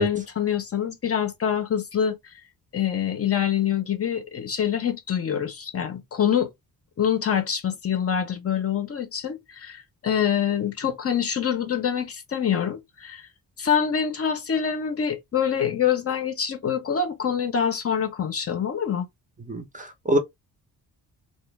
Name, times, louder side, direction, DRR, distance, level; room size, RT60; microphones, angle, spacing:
voice 1, 0.0-2.2 2.7-6.5 7.0-13.3 13.6-19.1, left 8 dB, 40° left, 0.5 m, -25 dB
voice 2, 19.5-20.2, right 1 dB, 20° right, 0.5 m, -24 dB
2.1 x 2.0 x 3.1 m
cardioid pair, 100°, 39 cm